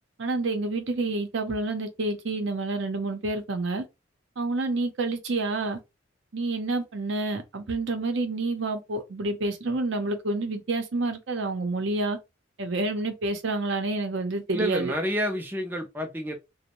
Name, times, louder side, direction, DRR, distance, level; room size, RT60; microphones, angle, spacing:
voice 1, 0.2-3.8 4.4-5.8 6.3-12.2 12.6-14.9, right 2 dB, 65° right, 0.6 m, -28 dB
voice 2, 14.5-16.3, equal, 10° right, 0.4 m, -29 dB
2.5 x 2.0 x 2.9 m
head